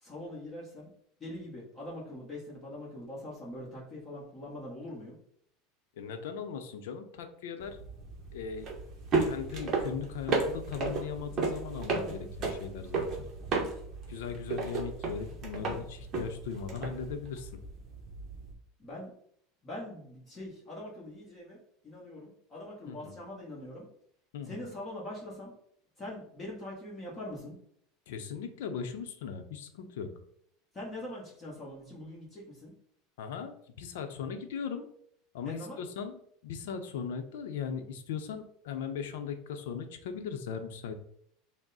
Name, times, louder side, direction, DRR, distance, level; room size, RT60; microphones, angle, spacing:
voice 1, 0.0-0.9 1.2-5.2 18.8-19.1 19.6-23.9 24.4-25.5 26.0-27.5 30.7-32.7 35.4-35.8, left 1 dB, 15° left, -5 dB, 1.0 m, -43 dB
voice 2, 6.0-7.8 8.3-8.7 9.2-13.3 14.1-17.6 22.9-23.1 24.3-24.7 28.1-30.1 33.2-34.9 35.3-40.9, left 6 dB, 90° left, 7 dB, 0.6 m, -38 dB
sound 1, 7.6-18.5, right 3 dB, 25° right, 0.8 m, -34 dB
6.0 x 2.1 x 4.0 m, 0.66 s
supercardioid pair, 175°, 0 cm